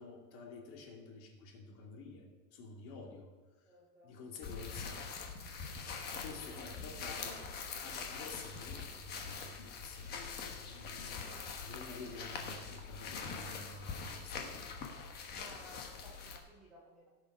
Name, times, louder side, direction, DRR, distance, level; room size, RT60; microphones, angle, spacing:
voice 1, 0.0-3.3 3.6-3.7 4.0-5.1 6.2-7.4 7.8-14.7, left 3 dB, 40° left, 0 dB, 2.5 m, -50 dB
voice 2, 3.6-4.2 4.6-4.8 6.5-7.4 15.2-17.1, left 1 dB, ahead, -10 dB, 0.3 m, -58 dB
sound 1, 4.4-16.4, left 5 dB, 20° left, 1.2 m, -44 dB
17.0 x 6.6 x 4.8 m, 1.4 s
supercardioid pair, 165°, 48 cm